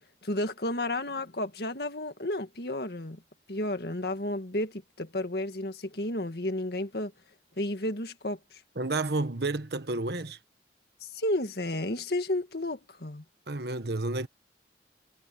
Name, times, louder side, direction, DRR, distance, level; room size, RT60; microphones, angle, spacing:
voice 1, 0.2-3.2 3.5-7.1 7.6-8.6 11.0-13.2, left 1 dB, 65° left, 1.9 m, -32 dB
voice 2, 8.8-10.4 13.5-14.3, right 2 dB, 70° right, 1.4 m, -30 dB
head